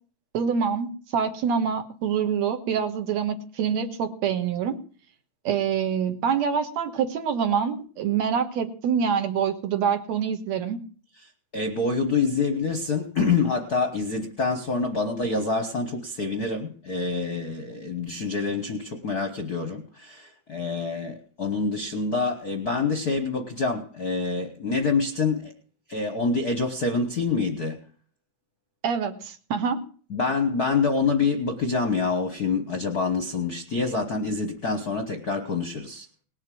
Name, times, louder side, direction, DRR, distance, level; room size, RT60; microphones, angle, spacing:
voice 1, 0.3-4.8 5.4-10.8 28.8-29.8, right 7 dB, 70° right, 6 dB, 2.5 m, -26 dB
voice 2, 11.5-25.5 25.9-27.8 30.1-36.1, left 4 dB, 55° left, 7 dB, 1.0 m, -26 dB
19.0 x 6.6 x 7.6 m, 0.42 s
omnidirectional pair, 3.3 m